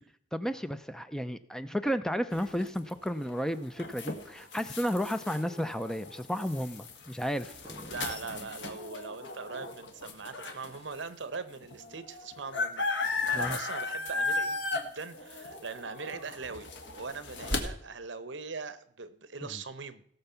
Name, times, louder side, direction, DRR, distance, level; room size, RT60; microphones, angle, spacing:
voice 1, 0.3-7.9 13.3-13.6, equal, 5° left, 11 dB, 0.4 m, -33 dB
sound 1, 2.3-10.8 11.3-11.4 11.6-17.6, left 3 dB, 70° left, 1.8 m, -36 dB
voice 2, 7.7-20.0, right 4 dB, 70° right, 13 dB, 0.9 m, -41 dB
17.0 x 6.9 x 5.7 m, 0.69 s
head